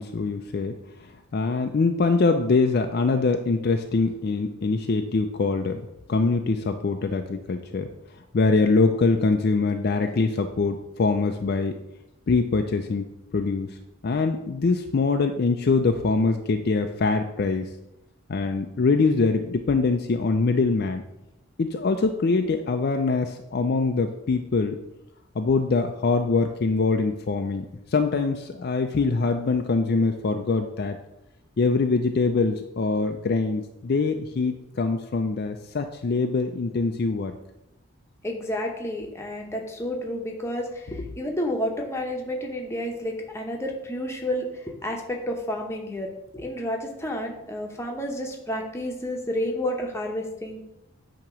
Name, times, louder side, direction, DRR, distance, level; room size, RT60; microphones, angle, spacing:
voice 1, 0.0-5.8 6.1-7.9 8.3-11.7 12.3-13.0 13.3-13.8 14.0-17.7 18.3-21.0 21.6-24.8 25.4-31.0 31.6-37.3, left 4 dB, 45° left, 5 dB, 0.4 m, -23 dB
voice 2, 38.2-50.6, left 1 dB, 10° left, 1 dB, 0.9 m, -30 dB
8.8 x 2.9 x 6.1 m, 0.90 s
head